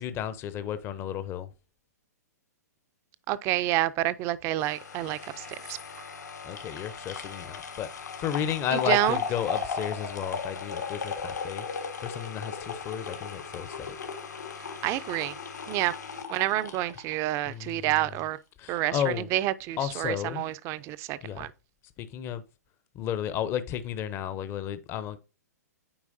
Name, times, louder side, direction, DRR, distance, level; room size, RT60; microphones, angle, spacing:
voice 1, 0.0-1.5 6.4-14.0 17.5-18.1 18.6-19.3 19.8-20.4 21.2-21.5 22.0-22.4 22.9-25.2, left 9 dB, 25° left, 0.6 m, -33 dB
voice 2, 3.3-5.8 8.7-9.2 14.8-15.3 15.7-15.9 16.3-18.4 18.7-19.0 19.3-21.5, right 15 dB, 30° right, 0.4 m, -28 dB
sound 1, 4.6-17.8 18.2-18.3, left 5 dB, 85° left, 1.5 m, -36 dB
8.6 x 4.5 x 2.6 m
hypercardioid pair, 120°, 9 cm